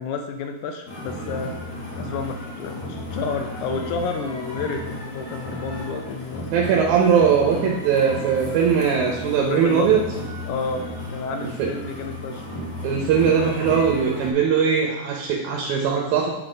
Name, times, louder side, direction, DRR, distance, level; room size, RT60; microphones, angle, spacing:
voice 1, 0.0-1.5 1.9-6.5 7.5-7.8 9.3-10.0 10.5-12.5 13.4-13.6, left 5 dB, 80° left, 5 dB, 2.0 m, -30 dB
sound 1, 0.9-14.3, equal, 55° left, 1.0 m, -34 dB
voice 2, 6.5-10.0 11.6-11.7 12.8-16.3, right 7 dB, 80° right, -1 dB, 2.2 m, -20 dB
8.2 x 4.0 x 5.0 m, 1.0 s
omnidirectional pair, 3.5 m